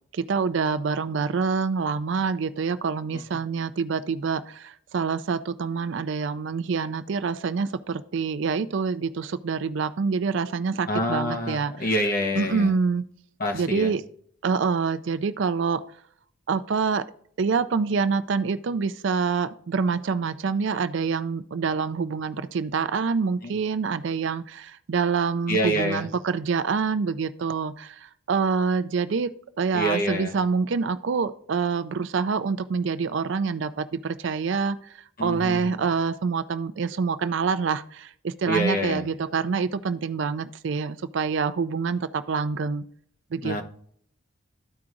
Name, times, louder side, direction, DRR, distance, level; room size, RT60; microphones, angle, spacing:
voice 1, 0.1-11.7 12.4-13.0 13.5-14.0 14.4-15.8 16.5-17.0 17.4-28.0 28.3-29.3 29.6-34.8 35.2-42.8 43.3-43.6, right 5 dB, 55° right, 13 dB, 0.4 m, -26 dB
voice 2, 10.9-12.7 13.4-13.9 23.4-23.5 25.5-26.1 29.7-30.4 35.2-35.8 38.5-39.1 43.4-43.6, equal, 40° left, 2 dB, 1.1 m, -27 dB
13.5 x 4.7 x 2.5 m, 0.63 s
head